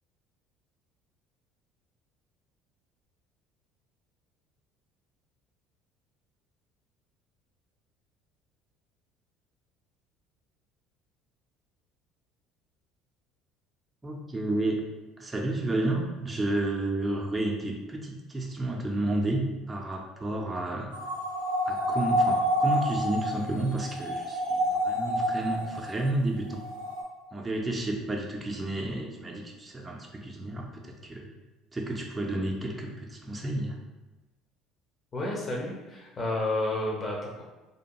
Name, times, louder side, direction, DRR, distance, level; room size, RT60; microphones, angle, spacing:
voice 1, 14.0-14.8 15.2-20.9 21.7-26.6 27.3-31.3 31.7-33.8, right 1 dB, 20° right, 0 dB, 0.4 m, -31 dB
sound 1, 20.9-26.1 26.5-27.0, equal, 85° right, 0.4 m, -28 dB
voice 2, 35.1-37.4, left 2 dB, 35° left, -2 dB, 0.6 m, -31 dB
2.6 x 2.1 x 2.9 m, 1.1 s
hypercardioid pair, 65°, 0 cm